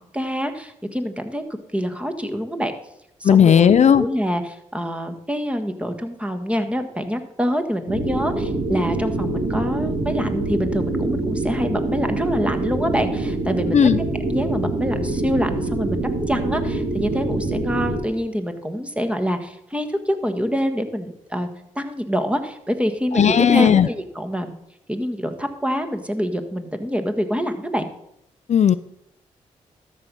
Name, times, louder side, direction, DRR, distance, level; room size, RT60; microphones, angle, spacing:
voice 1, 0.1-1.4 1.7-2.7 3.2-13.8 14.3-21.5 21.7-24.5 24.9-27.9, equal, 10° right, 6 dB, 1.5 m, -26 dB
voice 2, 3.2-4.0 13.7-14.0 23.1-23.9 28.5-28.7, left 8 dB, 55° left, 14 dB, 0.4 m, -14 dB
sound 1, 7.9-18.0, right 2 dB, 60° right, 2.4 m, -25 dB
13.0 x 5.4 x 6.2 m, 0.78 s
supercardioid pair, 45°, 14 cm